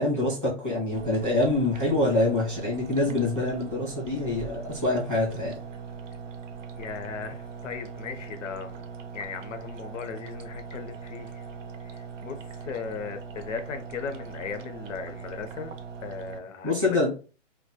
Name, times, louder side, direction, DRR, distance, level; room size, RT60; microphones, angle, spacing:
voice 1, 0.0-5.6 16.6-17.1, left 2 dB, ahead, -12 dB, 0.5 m, -25 dB
sound 1, 0.9-16.4, right 6 dB, 85° right, 0.6 m, -40 dB
voice 2, 6.8-8.8 9.1-11.5 11.8-15.7 16.0-17.1, left 6 dB, 85° left, 7 dB, 0.6 m, -37 dB
2.2 x 2.1 x 2.7 m, 0.35 s
hypercardioid pair, 175°, 37 cm